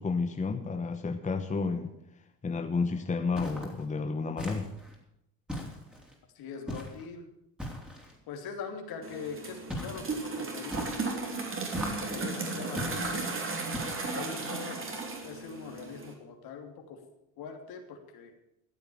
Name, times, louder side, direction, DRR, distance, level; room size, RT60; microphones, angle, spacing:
voice 1, 0.0-1.9 2.4-4.7, left 4 dB, 20° left, 6 dB, 1.1 m, -31 dB
sound 1, 3.4-3.8 4.4-4.9 5.5-6.1 6.7-7.1 7.6-8.2 9.7-10.2 10.7-11.2 11.7-12.2 12.8-13.2 13.7-14.2, equal, ahead, 3.6 m, -39 dB
voice 2, 6.3-7.3 8.3-11.4 12.0-13.3 14.1-14.9 15.2-17.0 17.4-18.3, left 6 dB, 65° left, 4 dB, 3.1 m, -42 dB
sound 2, 9.0-16.1, right 3 dB, 30° right, 3.2 m, -35 dB
14.0 x 8.0 x 8.7 m, 0.81 s
cardioid pair, 110°, 39 cm